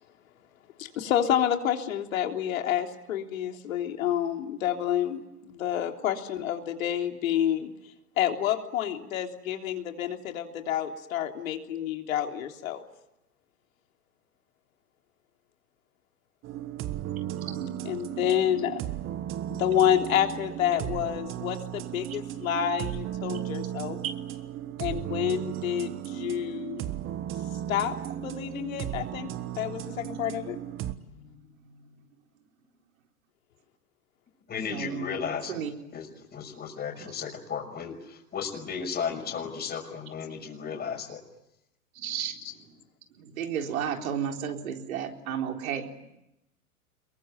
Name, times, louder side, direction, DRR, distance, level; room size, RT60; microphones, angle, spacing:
voice 1, 0.8-7.7 8.2-12.8 17.9-18.8 19.5-24.0 24.8-26.9 27.7-27.9 28.2-29.3 29.6-30.6, left 10 dB, 60° left, 4 dB, 3.5 m, -28 dB
sound 1, 16.4-30.9, right 11 dB, 25° right, 1.4 m, -35 dB
voice 2, 17.3-17.7 22.1-22.2 23.3-23.4 23.7-24.1 29.5-29.9 31.0-31.5 34.7-35.0 35.5-35.7 41.9-42.4 43.2-45.9, right 8 dB, 65° right, 3 dB, 4.2 m, -33 dB
voice 3, 34.5-35.6 35.9-41.2, left 6 dB, 20° left, 3 dB, 6.2 m, -34 dB
28.0 x 22.5 x 9.3 m, 0.87 s
hypercardioid pair, 110°, 45 cm